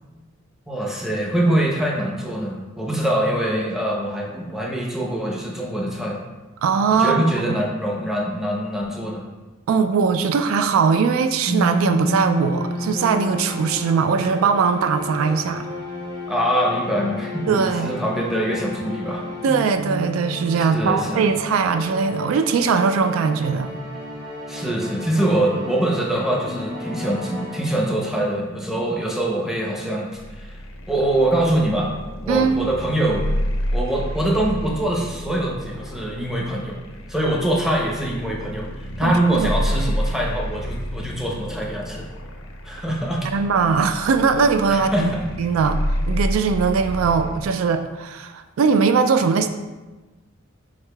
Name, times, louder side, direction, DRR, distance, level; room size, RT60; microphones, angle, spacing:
voice 1, 0.7-6.2 6.9-9.2 16.3-19.2 20.6-21.3 24.5-30.5 30.9-31.9 32.2-33.3 33.7-36.8 37.1-38.7 39.0-42.1 42.6-43.3 44.7-45.2, right 1 dB, ahead, -3 dB, 0.6 m, -23 dB
voice 2, 6.6-7.6 9.7-15.7 17.5-18.0 19.4-23.7 32.3-32.6 39.0-39.5 43.2-45.1 45.4-49.5, right 5 dB, 85° right, 10 dB, 0.3 m, -20 dB
sound 1, 11.5-28.2, left 1 dB, 20° right, 1.0 m, -31 dB
sound 2, 30.1-47.5, equal, 80° left, 0.5 m, -30 dB
4.8 x 4.3 x 2.3 m, 1.2 s
head